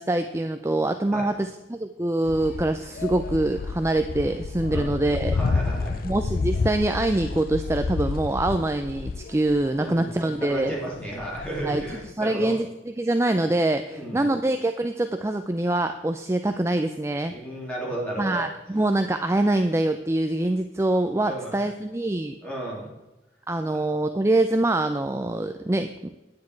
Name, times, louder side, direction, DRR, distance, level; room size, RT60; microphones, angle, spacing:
voice 1, 0.0-5.3 6.0-10.7 11.6-11.8 12.2-17.3 18.2-22.3 23.5-25.9, right 1 dB, 15° right, 7 dB, 0.4 m, -24 dB
sound 1, 2.3-12.1, left 4 dB, 50° left, 0.4 m, -30 dB
voice 2, 5.3-6.0 9.8-12.5 13.9-14.3 17.3-18.4 21.3-21.5 22.4-22.9 23.7-23.8, right 1 dB, 5° left, -4 dB, 3.2 m, -33 dB
9.7 x 9.5 x 4.6 m, 1.0 s
head